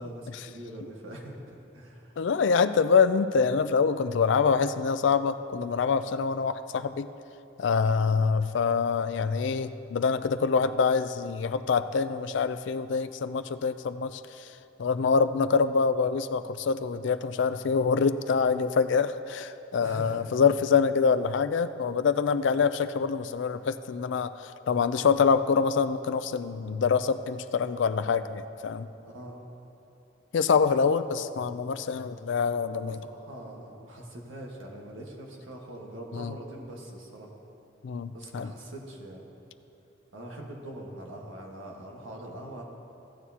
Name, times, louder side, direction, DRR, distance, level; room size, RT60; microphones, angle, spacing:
voice 1, 0.0-2.3 19.8-20.2 29.0-29.4 33.0-37.3 38.1-39.3 40.1-42.6, right 1 dB, 80° right, -1 dB, 1.5 m, -43 dB
voice 2, 2.2-7.1 7.6-14.5 14.8-28.9 30.3-33.0 36.1-36.3 37.8-38.5, left 5 dB, 65° left, 12 dB, 0.4 m, -25 dB
15.5 x 9.2 x 2.8 m, 2.9 s
head